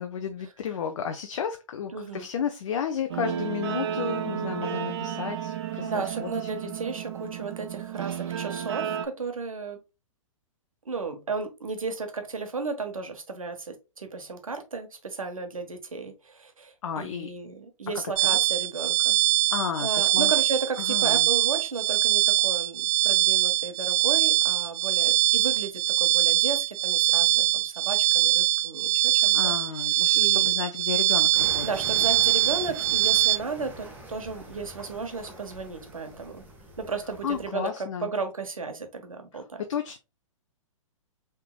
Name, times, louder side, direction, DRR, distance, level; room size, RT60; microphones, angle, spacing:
voice 1, 0.0-6.3 6.6-6.7 16.8-17.3 19.5-20.3 20.8-21.3 29.2-31.7 37.2-38.1 39.3-39.4 39.7-40.0, left 8 dB, 60° left, 0.7 m, -32 dB
voice 2, 1.9-2.3 5.8-9.8 10.8-19.2 19.8-29.5 29.9-30.5 31.6-36.4 36.8-39.6, right 4 dB, 85° right, 1.2 m, -34 dB
Guitar, 3.1-9.1, right 9 dB, 50° right, 0.8 m, -32 dB
sound 1, 18.2-33.4, right 15 dB, 35° right, 0.3 m, -23 dB
sound 2, 31.3-37.5, right 2 dB, 10° right, 1.3 m, -43 dB
5.7 x 3.6 x 2.2 m
figure-of-eight pair, 120°, 17 cm